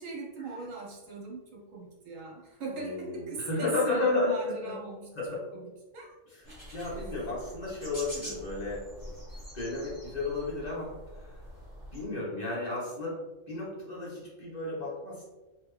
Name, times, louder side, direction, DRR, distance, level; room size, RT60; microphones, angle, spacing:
voice 1, 0.0-5.1 5.5-6.1 6.7-7.0, right 3 dB, 70° right, -1 dB, 1.3 m, -40 dB
voice 2, 2.7-4.7 5.1-5.4 6.3-8.8 9.5-10.9 11.9-13.2 13.5-15.2, left 2 dB, 30° left, -6 dB, 1.5 m, -33 dB
sound 1, 6.4-12.0, equal, 25° right, 1.5 m, -45 dB
3.4 x 3.3 x 3.2 m, 1.1 s
omnidirectional pair, 1.4 m